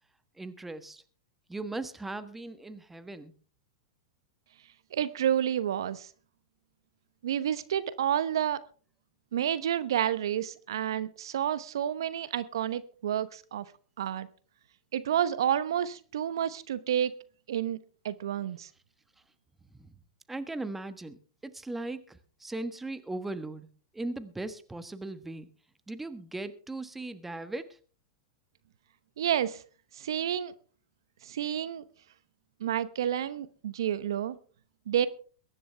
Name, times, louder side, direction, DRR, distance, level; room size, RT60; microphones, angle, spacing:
voice 1, 0.4-1.0 1.5-3.3 19.9-20.0 20.3-23.7 23.9-25.5 25.9-27.8, right 2 dB, 5° right, 11 dB, 1.3 m, -38 dB
voice 2, 4.9-6.1 7.2-8.6 9.3-13.6 14.0-14.3 14.9-17.1 17.5-17.8 18.0-18.7 29.2-29.6 29.9-30.5 31.2-31.8 32.6-34.4 34.9-35.1, right 10 dB, 70° right, 15 dB, 0.9 m, -29 dB
22.0 x 11.0 x 3.4 m, 0.40 s
hypercardioid pair, 110°, 2 cm